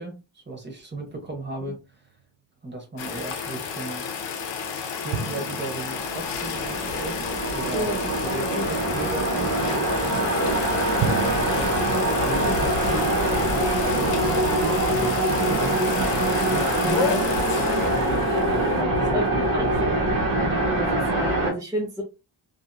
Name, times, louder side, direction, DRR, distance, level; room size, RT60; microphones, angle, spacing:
voice 1, 0.0-2.1 2.6-4.1 5.0-7.2 7.5-7.9 8.2-10.2 11.4-11.8 12.2-13.3 13.8-17.5 17.9-20.0, right 2 dB, 25° right, 0.9 m, -36 dB
sound 1, 0.9-2.3 5.1-7.7 11.0-12.0, right 5 dB, 75° right, 0.7 m, -34 dB
sound 2, 3.0-18.8, left 6 dB, 75° left, 0.7 m, -31 dB
sound 3, 5.9-21.5, right 1 dB, 50° right, 1.3 m, -24 dB
voice 2, 10.9-11.3 19.1-19.2 19.5-19.7 20.7-22.0, equal, 10° right, 0.4 m, -29 dB
2.8 x 2.6 x 2.2 m
wide cardioid pair, 170°, 44 cm